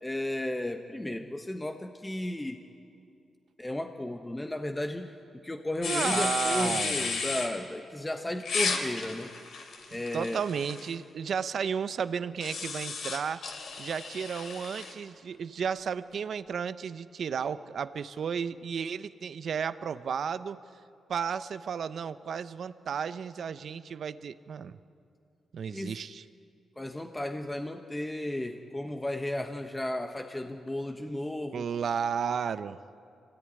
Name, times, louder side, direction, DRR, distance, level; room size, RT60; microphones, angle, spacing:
voice 1, 0.0-2.6 3.6-5.1 5.4-9.3 9.9-10.4 25.7-26.0 26.8-31.7, left 1 dB, 15° left, 4 dB, 1.3 m, -34 dB
sound 1, 5.8-7.5 8.4-10.9 12.4-14.9, left 4 dB, 70° left, 3.4 m, -33 dB
voice 2, 5.9-7.1 10.1-13.5 13.8-20.6 21.1-24.8 25.5-26.2 31.5-32.8, right 7 dB, 65° right, 13 dB, 0.8 m, -33 dB
25.0 x 17.5 x 9.9 m, 2.5 s
cardioid pair, 90°, 0 cm